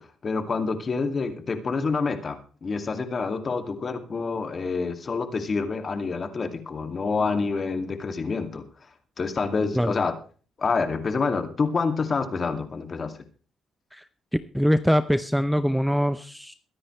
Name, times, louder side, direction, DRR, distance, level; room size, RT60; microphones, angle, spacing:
voice 1, 0.0-8.7 9.2-10.1 10.6-13.1, left 4 dB, 40° left, 7 dB, 2.3 m, -27 dB
voice 2, 14.5-16.5, equal, ahead, 12 dB, 0.7 m, -23 dB
22.5 x 10.0 x 3.2 m, 0.39 s
cardioid pair, 90°, 0 cm